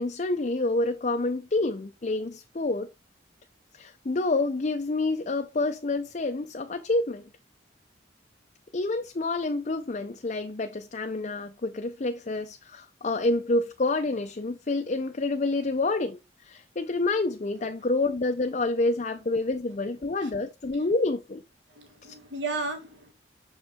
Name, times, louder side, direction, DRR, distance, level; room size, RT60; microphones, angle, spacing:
voice 1, 0.0-2.9 3.7-7.3 8.7-21.4 22.1-22.2, left 2 dB, 40° left, 0.5 m, -28 dB
voice 2, 21.7-23.1, right 3 dB, 70° right, 1.6 m, -34 dB
6.4 x 5.0 x 3.5 m
head